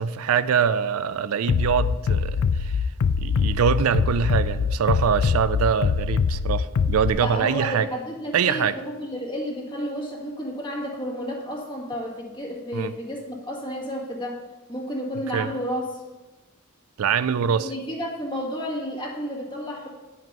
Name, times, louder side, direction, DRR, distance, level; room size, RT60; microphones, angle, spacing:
voice 1, 0.0-2.9 3.2-7.9 8.3-8.7 12.7-12.9 15.3-15.5 17.0-17.7, right 7 dB, 85° right, 14 dB, 0.4 m, -24 dB
Bass drum, 1.5-7.1, left 5 dB, 75° left, 0.4 m, -23 dB
voice 2, 7.1-14.4 14.7-15.8 17.6-19.9, equal, 20° left, -3 dB, 1.8 m, -31 dB
9.4 x 5.2 x 5.4 m, 1.2 s
head